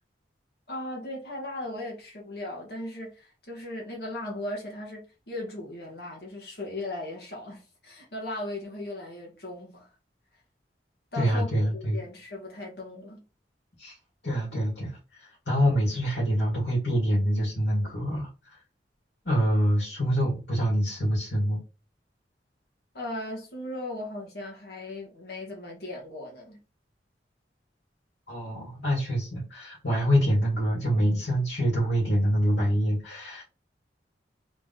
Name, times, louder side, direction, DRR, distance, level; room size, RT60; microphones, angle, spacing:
voice 1, 0.7-9.9 11.1-11.5 11.7-13.2 22.9-26.6, left 1 dB, 65° left, 1.5 m, -37 dB
voice 2, 11.1-12.0 13.8-14.0 14.2-18.3 19.2-21.6 28.3-33.4, equal, 80° left, 2.1 m, -25 dB
3.7 x 3.2 x 3.8 m
head